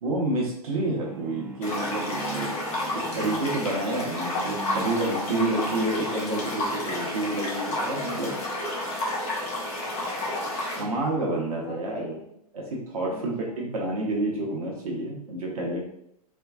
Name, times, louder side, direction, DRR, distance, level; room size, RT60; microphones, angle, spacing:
voice 1, 0.0-2.5 3.1-8.3 10.8-12.2 12.5-15.8, right 2 dB, 65° right, -2 dB, 0.8 m, -29 dB
sound 1, 1.0-6.9, right 7 dB, 10° right, 0.4 m, -40 dB
sound 2, 1.6-10.8, left 1 dB, 30° left, 1.0 m, -31 dB
voice 2, 2.1-3.2 8.3-8.9 11.6-12.3 13.1-13.7, left 2 dB, 45° left, -5 dB, 1.4 m, -42 dB
3.5 x 3.0 x 2.3 m, 0.75 s
figure-of-eight pair, 105°, 20 cm